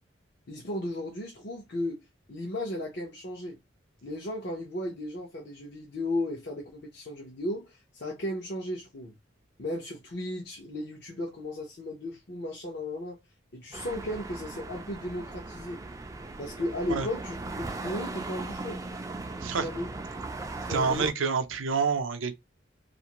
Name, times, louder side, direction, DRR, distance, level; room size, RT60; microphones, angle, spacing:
voice 1, 0.5-2.0 2.3-3.6 4.0-9.1 9.6-13.2 13.5-15.8 16.4-18.8 19.6-19.9 20.6-21.1, left 1 dB, 55° left, 0.7 m, -35 dB
sound 1, 13.7-21.1, right 3 dB, 15° right, 0.3 m, -38 dB
voice 2, 20.7-22.3, right 5 dB, 90° right, 0.5 m, -27 dB
2.5 x 2.4 x 2.9 m
head